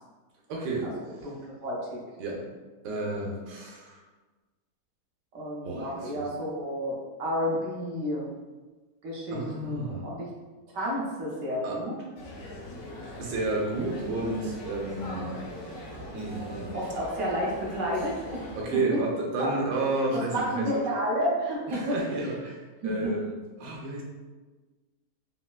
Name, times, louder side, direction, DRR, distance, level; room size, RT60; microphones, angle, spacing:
voice 1, 0.5-1.3 2.2-2.5 2.8-4.0 5.6-6.2 9.3-10.1 11.6-11.8 13.2-15.3 16.1-16.8 18.6-20.7 21.7-24.0, right 2 dB, 85° right, -2 dB, 1.4 m, -31 dB
voice 2, 1.6-2.0 5.3-8.2 9.0-10.3 10.7-11.9 16.7-18.5 18.9-19.0 19.4-19.5 20.3-22.0 22.8-23.1, equal, 65° right, -4 dB, 0.8 m, -30 dB
sound 1, 12.2-18.6, left 1 dB, 75° left, 0.7 m, -41 dB
3.9 x 2.2 x 2.3 m, 1.3 s
omnidirectional pair, 2.0 m